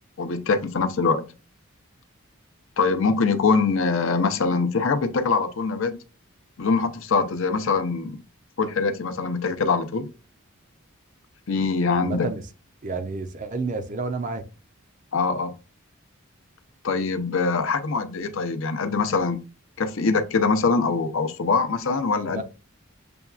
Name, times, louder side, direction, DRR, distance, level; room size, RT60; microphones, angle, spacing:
voice 1, 0.2-1.3 2.8-6.0 6.6-8.2 8.6-10.1 11.5-12.3 15.1-15.5 16.8-19.4 19.8-22.4, left 4 dB, 65° left, 0.6 m, -23 dB
voice 2, 11.9-12.5 12.8-14.4 22.3-22.4, right 3 dB, 35° right, 0.5 m, -30 dB
6.8 x 2.3 x 2.3 m
head